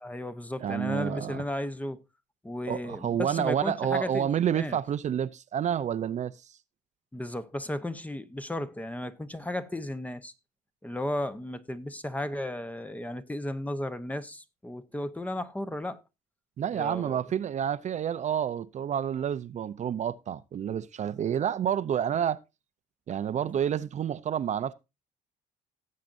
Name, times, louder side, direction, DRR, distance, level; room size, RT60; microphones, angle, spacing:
voice 1, 0.0-2.0 2.4-4.8 7.1-10.3 10.8-16.0 16.7-17.2, left 1 dB, 10° left, 0.8 m, -34 dB
voice 2, 0.6-1.4 2.7-6.6 16.6-22.4 23.1-24.7, right 9 dB, 45° right, 0.6 m, -29 dB
17.5 x 7.5 x 2.6 m
cardioid pair, 110°, 17 cm